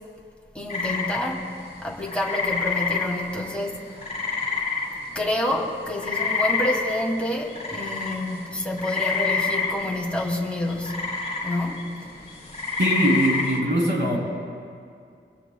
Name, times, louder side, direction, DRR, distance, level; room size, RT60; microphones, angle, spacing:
voice 1, 0.5-1.5 1.8-3.8 5.1-11.1 11.4-12.1, left 1 dB, 5° left, -1 dB, 2.5 m, -28 dB
sound 1, 0.7-5.4 5.6-13.6, left 4 dB, 35° left, 3.7 m, -28 dB
voice 2, 12.8-14.2, right 1 dB, 60° right, -2 dB, 3.4 m, -21 dB
26.0 x 22.0 x 2.3 m, 2.3 s
wide cardioid pair, 80°, 20 cm